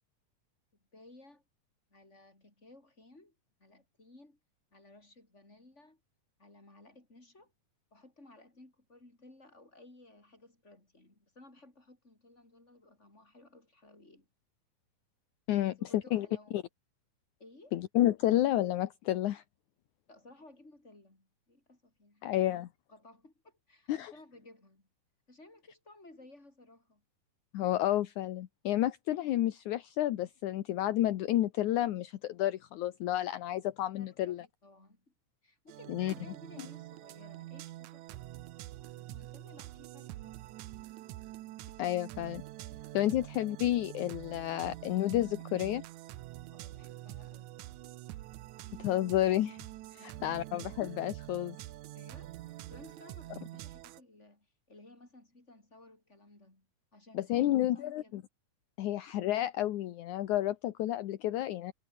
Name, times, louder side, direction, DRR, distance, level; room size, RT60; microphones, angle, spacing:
voice 1, 0.9-1.4 1.9-3.3 3.6-4.4 4.7-6.0 6.4-7.5 7.9-14.3 15.6-16.6 17.4-17.8 20.1-24.9 25.3-27.0 34.0-35.1 35.4-38.5 38.9-40.7 43.1-43.2 46.5-47.7 50.0-50.5 51.9-52.4 52.7-58.2, left 2 dB, 20° left, 6.7 m, -57 dB
voice 2, 15.5-16.3 16.5-16.6 17.7-19.4 22.2-22.7 23.9-24.1 27.5-34.4 35.9-36.1 41.8-42.4 42.9-45.8 48.8-49.6 50.0-51.6 57.1-58.2 58.8-61.7, left 13 dB, 70° left, 2.5 m, -30 dB
sound 1, 35.7-54.0, right 16 dB, 75° right, 2.1 m, -46 dB
omnidirectional pair, 3.7 m